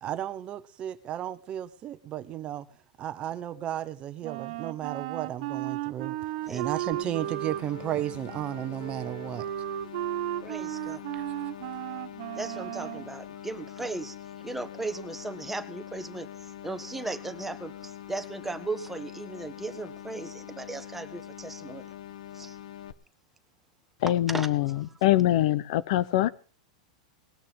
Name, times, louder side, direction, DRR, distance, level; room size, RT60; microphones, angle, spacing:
voice 1, 0.0-2.7 3.0-9.5 11.1-11.3, right 12 dB, 30° right, 1.1 m, -34 dB
Wind instrument woodwind instrument, 4.2-13.1, right 16 dB, 60° right, 1.6 m, -35 dB
sound 1, 6.9-22.9, left 11 dB, 75° left, 1.3 m, -44 dB
voice 2, 10.4-11.0 12.4-14.2 14.4-21.9 22.3-22.6 24.3-24.8, right 2 dB, 5° right, 1.5 m, -37 dB
voice 3, 24.0-26.3, left 14 dB, 60° left, 1.0 m, -24 dB
19.5 x 6.7 x 7.3 m
supercardioid pair, 140°, 4 cm